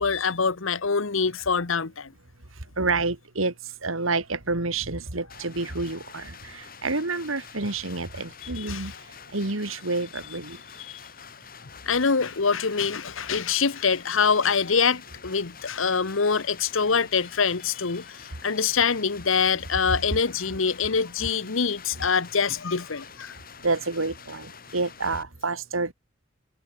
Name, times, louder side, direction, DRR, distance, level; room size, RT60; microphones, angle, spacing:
voice 1, 0.0-2.1 8.4-9.0 10.8-11.0 11.9-23.3, left 5 dB, 75° left, 1.1 m, -25 dB
voice 2, 2.8-3.5 3.8-8.9 9.3-10.6 23.6-25.9, right 3 dB, 80° right, 2.6 m, -28 dB
sound 1, 5.3-25.2, left 6 dB, 45° left, 7.0 m, -47 dB
head